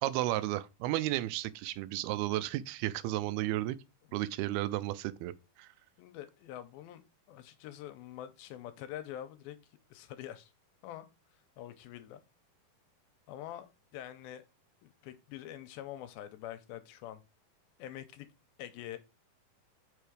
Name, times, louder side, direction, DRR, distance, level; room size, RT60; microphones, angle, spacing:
voice 1, 0.0-3.8 4.1-5.3 5.6-5.7, right 15 dB, 90° right, 2.5 m, -33 dB
voice 2, 6.0-7.0 7.3-9.6 9.9-10.5 10.8-11.0 11.6-12.2 13.3-13.7 13.9-14.5 14.8-17.2 17.8-18.3 18.6-19.0, left 12 dB, 85° left, 2.4 m, -45 dB
5.9 x 4.6 x 4.9 m
omnidirectional pair, 4.4 m